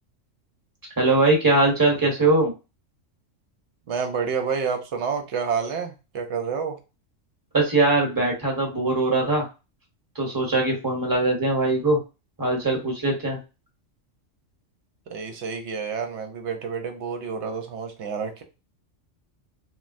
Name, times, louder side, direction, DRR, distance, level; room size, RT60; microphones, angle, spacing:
voice 1, 1.0-2.5 7.5-9.5 10.1-12.0 12.4-13.4, right 2 dB, 20° right, 0 dB, 0.9 m, -21 dB
voice 2, 3.9-6.8 15.1-18.4, right 6 dB, 70° right, 5 dB, 0.9 m, -29 dB
3.1 x 2.3 x 2.5 m, 0.29 s
omnidirectional pair, 1.3 m